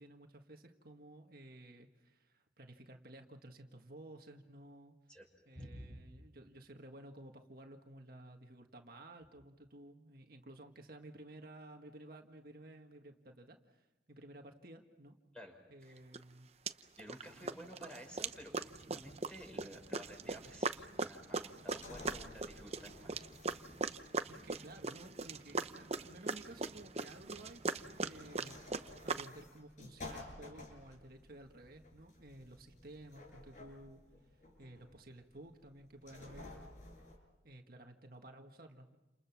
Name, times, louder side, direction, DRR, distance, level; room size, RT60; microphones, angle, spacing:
voice 1, 0.0-5.0 5.5-15.2 15.7-16.5 17.4-17.7 24.3-28.6 29.0-36.6 37.4-39.0, right 1 dB, 50° right, 4 dB, 1.7 m, -54 dB
voice 2, 5.5-6.0 15.3-15.5 15.8-16.0 17.0-23.2, equal, 5° left, 2 dB, 5.8 m, -52 dB
sound 1, 16.1-16.2 16.7-17.2 17.5-29.3, right 4 dB, 35° right, 0.8 m, -40 dB
sound 2, 20.2-37.2, left 2 dB, 45° left, 6.5 m, -54 dB
30.0 x 28.0 x 6.1 m, 1.0 s
head